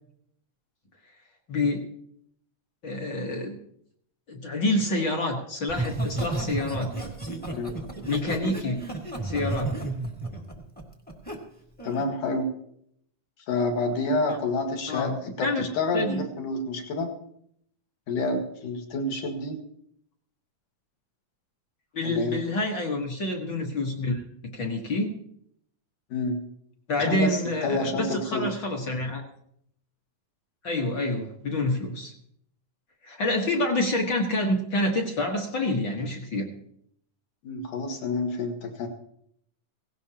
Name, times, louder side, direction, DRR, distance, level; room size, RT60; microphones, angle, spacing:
voice 1, 1.5-1.8 2.8-3.6 4.3-6.9 8.0-8.8 9.2-9.7 14.3-14.4 14.9-15.1 15.4-15.6 15.9-16.3 21.9-24.2 24.5-25.1 26.9-29.2 30.6-32.1 33.0-36.5, left 2 dB, 50° left, 2 dB, 1.5 m, -27 dB
Laughter, 5.7-11.4 11.8-12.1, right 2 dB, 5° left, 0.6 m, -32 dB
voice 2, 11.8-12.5 13.5-17.1 18.1-19.6 22.0-22.4 26.1-26.4 27.0-28.5 37.4-38.9, left 2 dB, 75° left, 3 dB, 3.4 m, -28 dB
17.5 x 17.5 x 2.9 m, 0.69 s
omnidirectional pair, 3.7 m